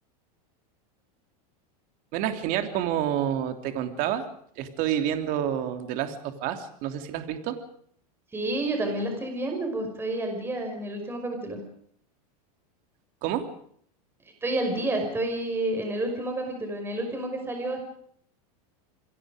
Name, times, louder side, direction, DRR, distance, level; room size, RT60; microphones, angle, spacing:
voice 1, 2.1-4.2 4.6-7.6 13.2-13.5, right 10 dB, 45° right, 7 dB, 3.2 m, -28 dB
voice 2, 8.3-11.6 14.4-17.8, right 1 dB, 10° right, 4 dB, 5.7 m, -29 dB
28.0 x 22.0 x 5.1 m, 0.63 s
supercardioid pair, 150°, 20 cm